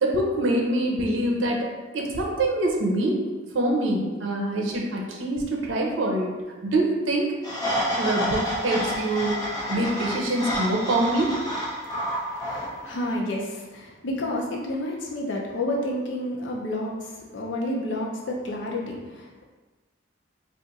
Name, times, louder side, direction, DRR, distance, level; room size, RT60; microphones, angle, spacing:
voice 1, 0.0-3.2 3.5-6.3 6.6-7.3 8.0-9.4 9.7-11.3, right 1 dB, 85° right, -1 dB, 0.6 m, -25 dB
sound 1, 7.4-13.1, equal, 20° left, 1.0 m, -29 dB
voice 2, 12.3-19.4, left 1 dB, 70° left, -1 dB, 0.6 m, -30 dB
2.5 x 2.5 x 4.0 m, 1.3 s
head